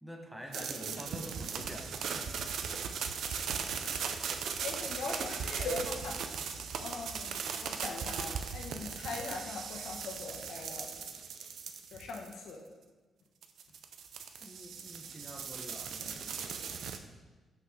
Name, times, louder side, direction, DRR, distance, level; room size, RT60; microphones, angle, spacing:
voice 1, 0.0-2.3 14.4-16.4, equal, 5° right, 3 dB, 1.0 m, -47 dB
sound 1, 0.5-12.5 13.4-17.0, right 6 dB, 75° right, 0.6 m, -38 dB
voice 2, 4.6-6.2 6.8-10.9 11.9-12.6, left 3 dB, 80° left, 0 dB, 1.3 m, -41 dB
5.9 x 5.6 x 4.8 m, 1.3 s
cardioid pair, 75°, 0 cm